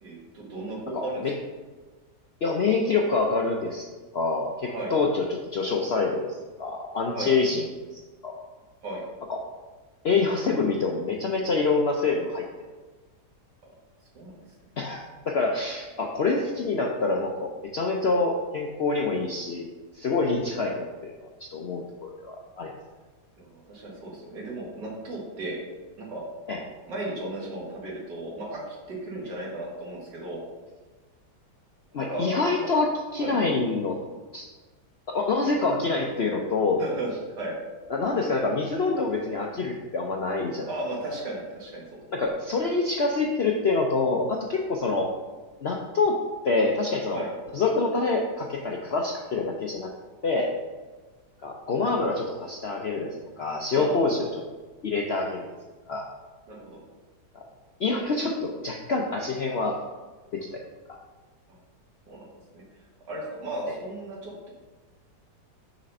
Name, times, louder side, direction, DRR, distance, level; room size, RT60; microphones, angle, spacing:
voice 1, 0.0-1.2 4.7-4.9 7.1-7.3 8.8-9.0 13.6-13.7 14.1-14.4 23.4-25.6 26.0-26.3 26.9-30.4 31.9-32.3 33.2-33.4 36.8-37.1 37.4-37.5 40.7-42.3 47.1-47.3 53.7-54.2 56.5-56.8 61.5-61.6 62.1-62.2 62.5-62.6 63.1-64.5, right 1 dB, 85° right, -3 dB, 2.4 m, -35 dB
voice 2, 0.9-1.3 2.4-3.9 4.1-5.2 5.5-7.7 8.2-8.4 9.3-9.4 10.0-12.4 14.8-22.7 26.5-26.6 31.9-34.0 34.3-34.5 35.1-36.8 37.9-40.7 42.1-45.1 45.6-46.2 46.4-47.3 47.5-49.9 50.2-50.5 51.4-54.3 54.8-55.5 55.9-56.1 57.3-57.4 57.8-59.8 60.3-60.6 60.9-61.0, left 3 dB, 65° left, 0 dB, 0.6 m, -26 dB
6.5 x 4.2 x 5.4 m, 1.3 s
omnidirectional pair, 1.8 m